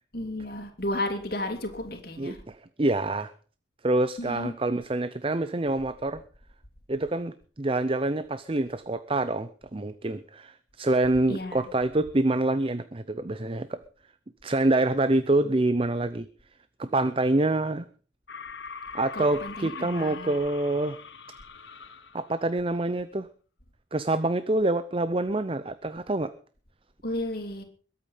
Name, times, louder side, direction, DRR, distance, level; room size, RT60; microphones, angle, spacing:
voice 1, 0.1-2.4 4.2-4.5 11.3-11.7 19.1-20.4 27.0-27.6, left 1 dB, 50° left, 5 dB, 2.9 m, -33 dB
voice 2, 2.2-3.3 3.8-6.2 6.9-13.8 14.4-16.3 16.8-17.9 18.9-21.0 22.1-23.3 23.9-26.3, right 2 dB, 30° right, 14 dB, 0.6 m, -26 dB
sound 1, 18.3-22.5, left 6 dB, 70° left, 1.0 m, -42 dB
22.0 x 8.7 x 5.5 m, 0.40 s
head